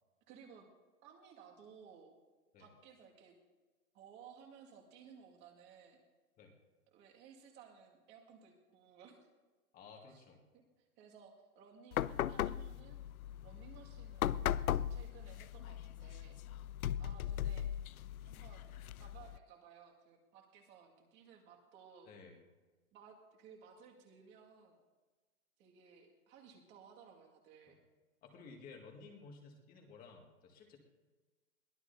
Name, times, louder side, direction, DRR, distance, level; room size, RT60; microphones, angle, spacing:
voice 1, 0.3-0.7 1.0-2.1 2.6-3.3 3.9-6.0 6.9-9.3 10.1-10.2 11.0-13.0 13.4-16.4 17.0-17.7 18.2-18.7 19.0-22.1 22.9-24.8 25.6-27.8, right 7 dB, 25° right, 1 dB, 2.1 m, -58 dB
voice 2, 9.7-10.4 16.5-16.6 22.0-22.4 27.7-27.8 28.2-30.8, left 4 dB, 20° left, 2 dB, 2.0 m, -55 dB
sound 1, 11.9-19.4, left 11 dB, 75° left, 0.6 m, -38 dB
22.5 x 16.5 x 2.7 m, 1.3 s
hypercardioid pair, 140°, 43 cm